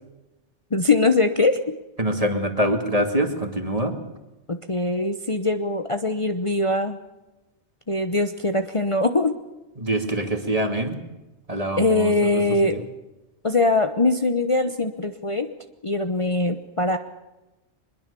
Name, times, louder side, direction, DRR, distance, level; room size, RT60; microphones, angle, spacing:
voice 1, 0.7-1.7 4.5-7.0 7.9-9.4 11.8-12.8 13.4-15.5 15.8-17.0, left 2 dB, 30° left, 7 dB, 1.0 m, -22 dB
voice 2, 2.0-3.9 9.8-11.0 11.5-12.4 12.7-12.8, right 1 dB, 30° right, 5 dB, 2.6 m, -24 dB
23.0 x 21.5 x 6.9 m, 1.1 s
omnidirectional pair, 1.2 m